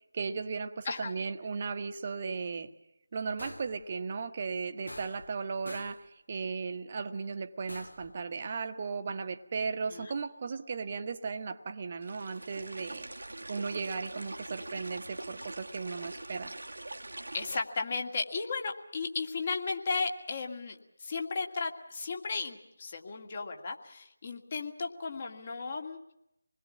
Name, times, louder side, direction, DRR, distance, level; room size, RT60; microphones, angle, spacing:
voice 1, 0.1-2.7 3.1-13.1 13.5-16.5, right 5 dB, 30° right, 8 dB, 1.2 m, -36 dB
sound 1, 3.4-3.8 4.9-5.4 5.7-6.1 7.7-8.1, left 1 dB, 80° left, 2.5 m, -46 dB
sound 2, 12.0-17.6, right 2 dB, 60° right, 1.3 m, -43 dB
voice 2, 17.3-26.1, left 4 dB, 30° left, 4 dB, 2.1 m, -35 dB
27.0 x 21.0 x 7.3 m, 0.83 s
figure-of-eight pair, 160°, 0 cm